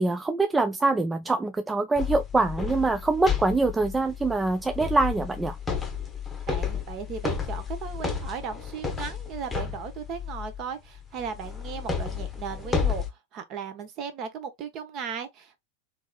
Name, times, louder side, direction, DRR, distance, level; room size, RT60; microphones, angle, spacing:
voice 1, 0.0-5.6, right 3 dB, 10° right, 0.3 m, -24 dB
sound 1, 2.0-10.6 11.2-13.1, left 6 dB, 10° left, 1.0 m, -32 dB
voice 2, 6.5-15.6, right 6 dB, 35° right, 0.9 m, -36 dB
3.4 x 3.3 x 2.4 m
figure-of-eight pair, 90°, 0 cm